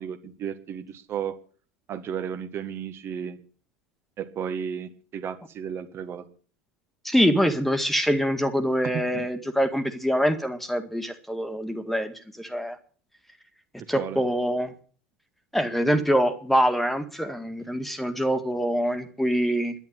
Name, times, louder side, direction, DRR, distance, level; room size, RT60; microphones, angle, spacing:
voice 1, 0.0-1.4 1.9-3.4 4.2-6.3 8.8-9.3 13.8-14.2, right 8 dB, 40° right, 9 dB, 1.6 m, -33 dB
voice 2, 7.0-12.8 13.9-14.7 15.5-19.8, equal, 5° left, 9 dB, 1.9 m, -24 dB
11.0 x 11.0 x 9.0 m, 0.43 s
figure-of-eight pair, 75°, 7 cm